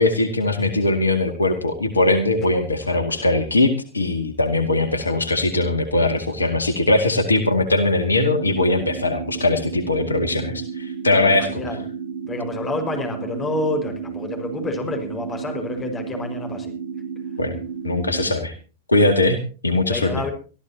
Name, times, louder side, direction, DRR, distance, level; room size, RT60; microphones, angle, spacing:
voice 1, 0.0-11.6 17.4-17.6 17.8-18.5 18.9-19.4 19.6-20.2, left 2 dB, 80° left, 8 dB, 2.0 m, -20 dB
sound 1, 8.3-18.3, right 6 dB, 65° right, 2.4 m, -32 dB
voice 2, 11.1-11.8 12.3-16.7 19.9-20.3, left 2 dB, 20° left, 5 dB, 5.4 m, -28 dB
24.5 x 14.0 x 2.9 m, 0.36 s
figure-of-eight pair, 95°, 0 cm